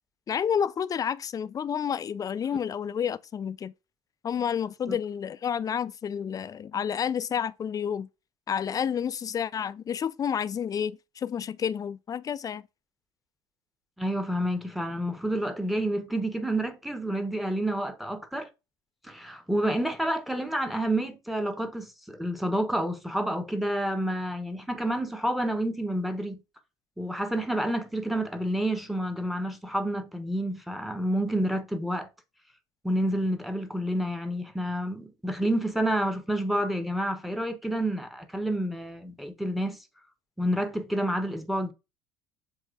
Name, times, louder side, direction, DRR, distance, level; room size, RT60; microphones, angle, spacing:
voice 1, 0.3-3.7 4.2-8.1 8.5-12.6, left 8 dB, 25° left, 0.3 m, -30 dB
voice 2, 14.0-18.5 19.0-26.4 27.0-32.1 32.8-39.8 40.4-41.7, right 1 dB, ahead, 0.8 m, -29 dB
7.3 x 3.0 x 2.4 m
hypercardioid pair, 65°, 14 cm